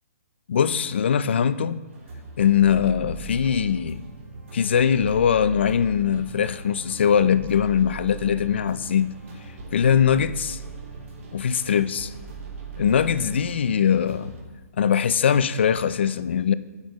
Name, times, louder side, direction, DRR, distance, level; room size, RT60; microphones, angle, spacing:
voice 1, 0.5-1.8 2.4-4.0 4.5-9.1 9.7-10.6 11.3-12.1 12.8-14.4 14.8-16.5, left 8 dB, 45° left, 0.3 m, -21 dB
sound 1, 1.9-14.4, right 5 dB, 55° right, 2.8 m, -39 dB
9.4 x 8.8 x 3.1 m
hypercardioid pair, 175°, 8 cm